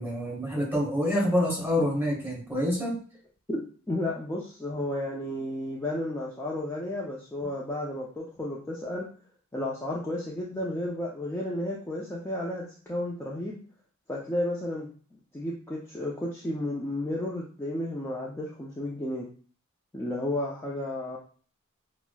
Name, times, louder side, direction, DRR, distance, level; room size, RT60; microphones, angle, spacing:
voice 1, 0.0-3.0, left 1 dB, 10° right, -5 dB, 1.5 m, -27 dB
voice 2, 3.9-9.1 9.5-13.6 14.1-14.9 15.3-19.3 19.9-21.2, left 1 dB, 10° left, -4 dB, 0.4 m, -32 dB
5.9 x 2.0 x 2.2 m, 0.42 s
head